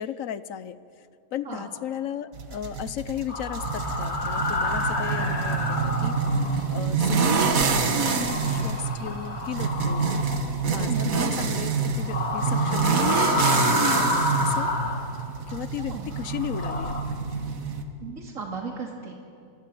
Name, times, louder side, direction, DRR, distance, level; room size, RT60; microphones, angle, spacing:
voice 1, 0.0-10.1 10.7-14.7 15.0-15.1 15.5-17.2, left 9 dB, 75° left, 14 dB, 1.2 m, -36 dB
sound 1, 2.3-17.8, right 5 dB, 90° right, 1.9 m, -26 dB
sound 2, 3.3-6.7 7.0-11.1 11.9-15.6 16.1-17.0, left 2 dB, 50° left, 2.2 m, -30 dB
voice 2, 10.9-11.2 15.8-16.1 18.0-19.2, right 5 dB, 75° right, 0 dB, 2.8 m, -35 dB
25.5 x 23.0 x 7.7 m, 2.5 s
omnidirectional pair, 1.4 m